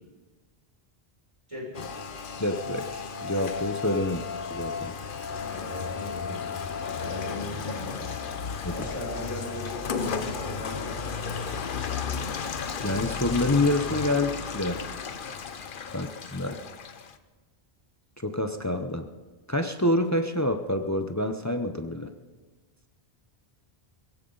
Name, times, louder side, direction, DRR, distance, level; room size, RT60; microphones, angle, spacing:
voice 1, 1.5-1.8 5.5-6.4 7.0-8.0 8.7-11.4 15.9-16.0 16.4-16.6, left 1 dB, 30° right, -5 dB, 6.4 m, -38 dB
Rain, 1.7-17.2, left 6 dB, 55° left, 0.9 m, -34 dB
voice 2, 2.4-4.2 4.5-4.9 8.6-8.7 12.8-14.8 15.9-16.5 18.2-19.1 19.5-22.1, left 1 dB, 20° left, 7 dB, 0.7 m, -27 dB
22.0 x 16.0 x 3.9 m, 1.3 s
omnidirectional pair, 1.1 m